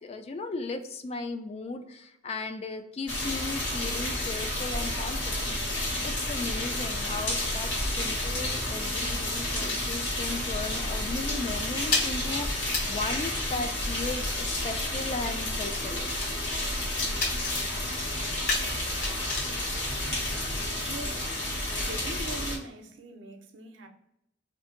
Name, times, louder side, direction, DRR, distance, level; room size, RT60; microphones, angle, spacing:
voice 1, 0.0-5.6 6.0-16.1, left 3 dB, 35° left, 0.3 m, -36 dB
sound 1, 3.1-22.6, left 1 dB, 70° left, 1.3 m, -31 dB
sound 2, 7.3-10.5 10.7-11.0 11.3-20.7, left 3 dB, 50° left, 0.9 m, -36 dB
voice 2, 20.9-21.3 21.7-23.9, right 2 dB, 85° right, 0.5 m, -41 dB
2.6 x 2.6 x 3.7 m
head